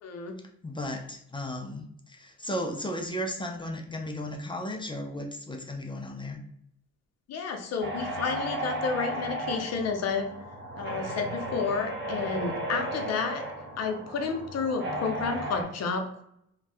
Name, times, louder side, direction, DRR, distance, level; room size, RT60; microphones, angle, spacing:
voice 1, 0.0-0.4 7.3-10.3 10.8-13.4 13.8-16.2, left 5 dB, 55° left, 5 dB, 0.6 m, -31 dB
voice 2, 0.6-6.4, left 1 dB, 15° left, 3 dB, 0.4 m, -35 dB
sound 1, 7.8-15.6, right 1 dB, 35° right, 0.8 m, -35 dB
2.6 x 2.3 x 3.4 m, 0.73 s
cardioid pair, 90°, 30 cm